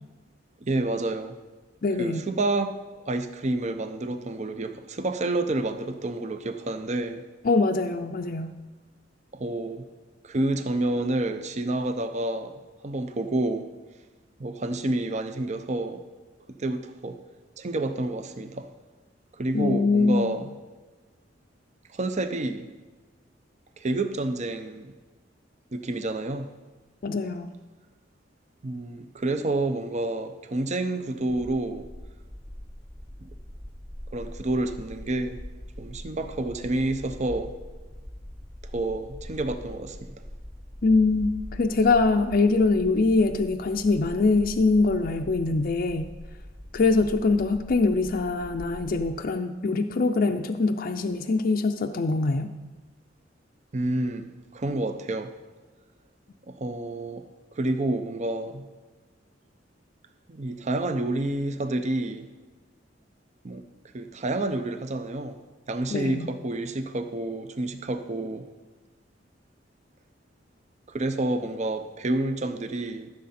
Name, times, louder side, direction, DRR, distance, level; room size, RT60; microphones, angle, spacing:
voice 1, 0.6-1.3 2.0-2.8 3.0-7.2 9.3-9.8 10.2-13.7 14.4-16.0 16.6-17.2 17.6-18.7 19.3-20.5 21.9-22.7 23.8-24.9 25.7-26.5 28.6-31.8 33.2-33.3 34.1-35.4 35.8-37.5 38.7-40.1 53.7-55.3 56.5-57.2 57.5-58.7 60.3-62.3 63.4-63.6 63.9-65.4 65.7-68.5 70.9-73.1, right 2 dB, 40° right, 8 dB, 0.6 m, -29 dB
voice 2, 1.8-2.2 7.4-8.5 19.5-20.3 27.0-27.5 40.8-46.1 46.7-52.5 65.9-66.3, left 3 dB, 50° left, 5 dB, 0.5 m, -23 dB
sound 1, 31.3-49.2, equal, 5° left, 0.8 m, -42 dB
14.0 x 6.6 x 4.2 m, 1.3 s
head